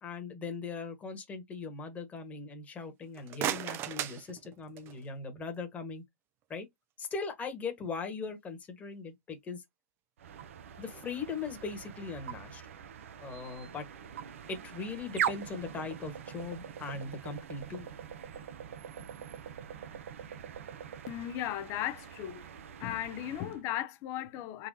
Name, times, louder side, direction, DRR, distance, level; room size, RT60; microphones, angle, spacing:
voice 1, 0.0-6.0 6.5-6.7 7.0-9.6 10.8-12.6 13.2-13.8 14.5-17.9, left 4 dB, 20° left, 1.4 m, -39 dB
sound 1, 3.0-5.1, right 11 dB, 30° right, 0.5 m, -36 dB
sound 2, 10.2-23.6, right 8 dB, 70° right, 0.8 m, -42 dB
voice 2, 21.1-22.5 22.8-24.7, left 12 dB, 40° left, 0.6 m, -36 dB
4.0 x 2.5 x 2.7 m
hypercardioid pair, 115°, 7 cm